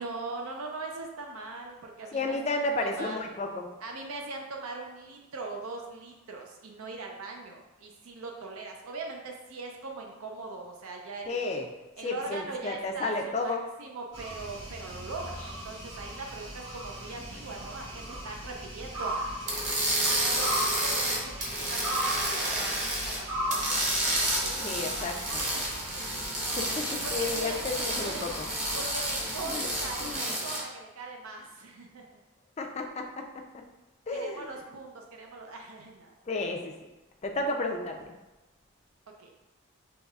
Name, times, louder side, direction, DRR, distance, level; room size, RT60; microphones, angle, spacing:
voice 1, 0.0-2.4 2.8-3.2 3.8-11.4 12.0-19.3 20.0-21.3 21.6-24.1 24.4-25.6 27.0-27.5 27.9-28.3 28.7-32.0 34.1-36.1 39.2-39.3, right 3 dB, 75° right, 1 dB, 0.5 m, -41 dB
voice 2, 2.1-3.7 11.2-11.7 12.0-13.6 24.6-25.4 26.6-28.5 29.4-29.7 30.0-30.3 32.6-33.3 34.1-34.5 36.3-36.7 37.2-38.1, left 2 dB, 30° left, 2 dB, 0.4 m, -32 dB
sound 1, 14.1-30.2, equal, 60° right, 1.4 m, -38 dB
sound 2, 19.5-23.2 23.5-30.6, right 1 dB, 35° right, 0.8 m, -30 dB
5.3 x 3.1 x 2.3 m, 1.1 s
head